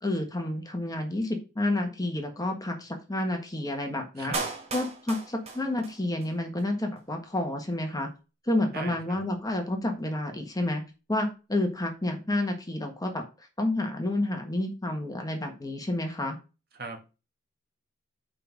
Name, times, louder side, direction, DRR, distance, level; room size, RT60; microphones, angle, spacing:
voice 1, 0.0-4.3 4.7-8.1 8.4-10.8 11.1-16.4, left 1 dB, 20° left, 4 dB, 1.4 m, -30 dB
voice 2, 4.2-4.5 8.7-9.2 16.8-17.2, right 3 dB, 50° right, 4 dB, 1.7 m, -39 dB
Clapping, 4.3-6.3 6.6-6.7, right 3 dB, 30° right, 1.8 m, -35 dB
5.7 x 5.2 x 6.4 m, 0.30 s
head